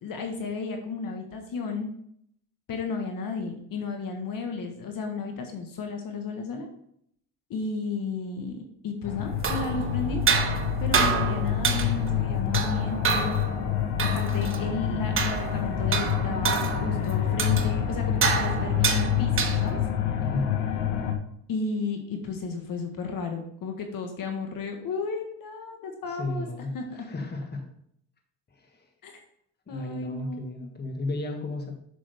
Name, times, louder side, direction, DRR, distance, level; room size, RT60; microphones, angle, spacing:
voice 1, 0.0-1.9 2.7-6.7 7.5-10.2 10.8-13.4 14.0-19.8 21.5-26.5 26.7-27.1 29.0-29.1 29.7-30.7, left 4 dB, 50° left, 4 dB, 1.4 m, -33 dB
sound 1, 9.0-21.2, left 10 dB, 80° left, 1.2 m, -27 dB
sound 2, 9.2-19.9, right 5 dB, 30° right, 1.2 m, -29 dB
voice 2, 20.2-20.5 26.1-27.6 28.6-28.7 29.7-31.8, left 2 dB, 25° left, 4 dB, 1.5 m, -33 dB
7.8 x 6.2 x 3.4 m, 0.69 s
cardioid pair, 100°, 42 cm